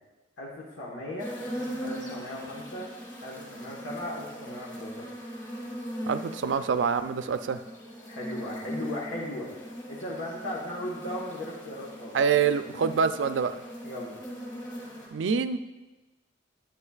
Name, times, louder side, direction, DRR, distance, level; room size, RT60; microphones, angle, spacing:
voice 1, 0.4-1.3 1.8-2.9 3.2-5.1 8.1-9.5 9.9-12.2 13.8-14.2, left 1 dB, 90° left, -5 dB, 1.3 m, -37 dB
sound 1, 1.2-15.1, equal, 20° left, 2.7 m, -40 dB
voice 2, 6.1-7.6 12.1-13.6 15.1-15.6, right 6 dB, 75° right, 11 dB, 0.4 m, -26 dB
9.9 x 9.1 x 2.4 m, 1.1 s
head